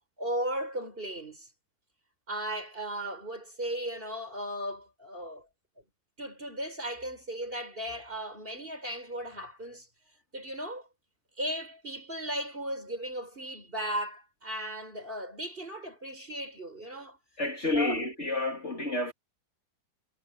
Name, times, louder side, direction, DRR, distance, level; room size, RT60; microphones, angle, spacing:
voice 1, 0.2-1.5 2.3-5.5 6.2-9.9 10.3-10.9 11.4-17.2 17.7-18.1, equal, 30° right, 6.3 m, -36 dB
voice 2, 17.4-19.1, left 2 dB, 40° left, 2.8 m, -29 dB
omnidirectional pair, 1.9 m